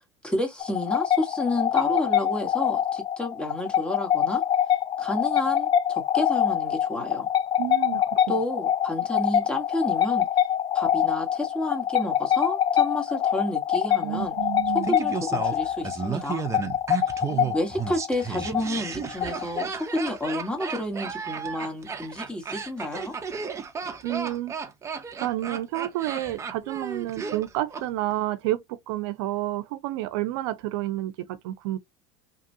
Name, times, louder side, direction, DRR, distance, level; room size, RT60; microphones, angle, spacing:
voice 1, 0.2-4.4 5.0-7.3 8.3-10.3 10.7-14.3 14.7-16.4 17.5-23.1, left 1 dB, 5° left, 1.3 m, -30 dB
sound 1, 0.6-20.0, left 9 dB, 30° left, 0.4 m, -25 dB
voice 2, 7.6-8.2 14.0-14.9 17.3-17.5 24.0-24.5 25.2-31.8, right 15 dB, 75° right, 0.6 m, -30 dB
Laughter, 14.8-27.8 28.1-28.2, right 5 dB, 20° right, 0.7 m, -33 dB
3.0 x 2.3 x 2.7 m
supercardioid pair, 110°, 14 cm